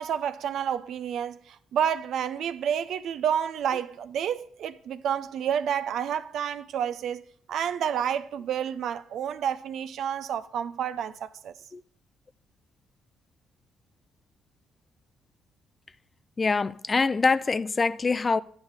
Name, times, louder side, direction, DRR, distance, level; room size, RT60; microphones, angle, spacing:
voice 1, 0.0-7.2 7.5-11.5, right 8 dB, 75° right, 0.5 m, -29 dB
voice 2, 16.4-18.4, left 4 dB, 30° left, 0.4 m, -24 dB
9.6 x 9.0 x 3.4 m
cardioid pair, 90°, 0 cm